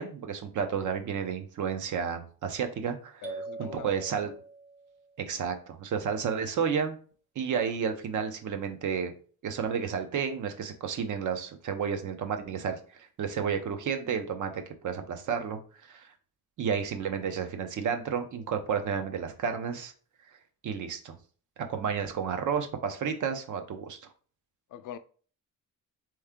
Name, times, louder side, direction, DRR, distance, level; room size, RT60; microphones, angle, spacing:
voice 1, 0.0-3.2 3.6-4.3 5.2-7.0 7.4-9.1 9.4-16.1 16.6-19.9 20.6-21.2 21.6-24.0, right 7 dB, 65° right, 0.8 m, -31 dB
voice 2, 3.2-3.9 4.2-4.3 24.7-25.0, left 9 dB, 70° left, 0.5 m, -42 dB
sound 1, 3.2-5.1, right 3 dB, 20° right, 0.8 m, -42 dB
4.4 x 3.1 x 3.6 m
wide cardioid pair, 160°, 33 cm